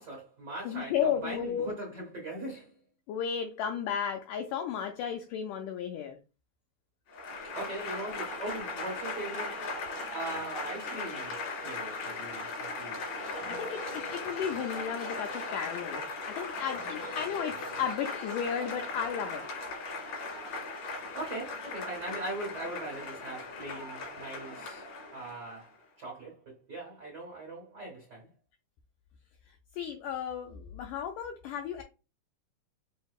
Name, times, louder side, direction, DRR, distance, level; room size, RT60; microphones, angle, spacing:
voice 1, 0.0-2.7 7.4-9.7 10.1-13.0 21.1-24.8 25.1-28.3, right 2 dB, 85° right, 0.9 m, -40 dB
voice 2, 0.7-1.7 3.1-6.2 13.5-19.4 29.7-31.8, left 8 dB, 85° left, 1.8 m, -34 dB
Applause / Crowd, 7.1-25.6, left 3 dB, 55° left, 3.2 m, -38 dB
6.4 x 2.7 x 2.3 m
omnidirectional pair, 4.3 m